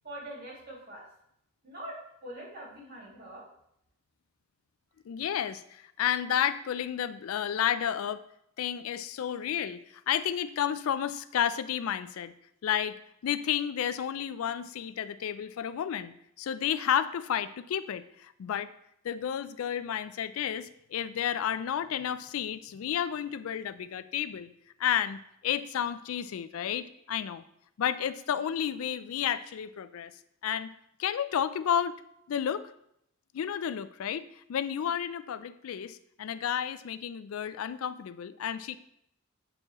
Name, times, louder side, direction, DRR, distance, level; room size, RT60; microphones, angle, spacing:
voice 1, 0.0-1.0 1.6-2.0 2.2-3.4, right 1 dB, 50° right, -5 dB, 2.4 m, -43 dB
voice 2, 5.1-8.2 8.6-9.8 10.1-12.3 12.6-13.0 13.2-18.7 19.0-24.5 24.8-27.4 27.8-30.1 30.4-30.7 31.0-32.0 32.3-32.6 33.3-38.8, left 9 dB, 85° left, 13 dB, 0.3 m, -31 dB
7.6 x 4.5 x 2.9 m, 0.74 s
head